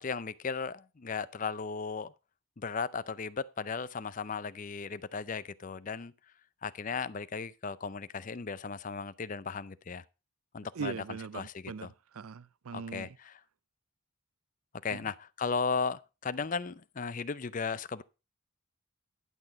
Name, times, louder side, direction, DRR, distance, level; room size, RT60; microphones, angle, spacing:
voice 1, 0.0-2.1 2.6-6.1 6.6-10.0 10.5-11.0 11.3-11.9 12.7-13.4 14.8-18.0, left 5 dB, 40° left, 0.5 m, -36 dB
voice 2, 10.8-13.1 14.9-15.0, right 5 dB, 90° right, 0.5 m, -40 dB
11.0 x 6.1 x 5.0 m
head